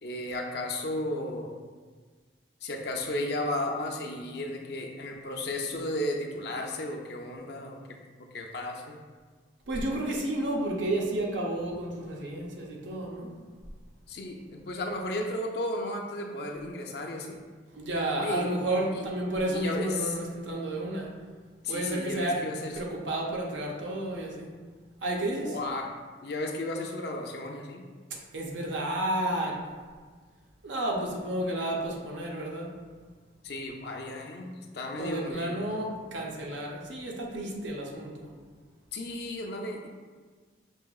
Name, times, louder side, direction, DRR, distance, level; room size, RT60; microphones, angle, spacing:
voice 1, 0.0-1.5 2.6-7.8 8.3-9.0 14.1-17.4 18.2-18.5 18.9-19.0 19.5-20.2 21.6-22.8 25.4-25.9 26.2-27.9 33.4-35.6 38.9-39.9, left 1 dB, 60° left, 2 dB, 0.5 m, -34 dB
voice 2, 9.7-13.3 17.7-21.1 21.7-22.4 22.8-24.5 25.0-25.6 28.3-29.6 30.6-32.7 35.0-38.3, right 1 dB, 85° right, -1 dB, 0.7 m, -31 dB
5.6 x 2.8 x 2.3 m, 1.5 s
head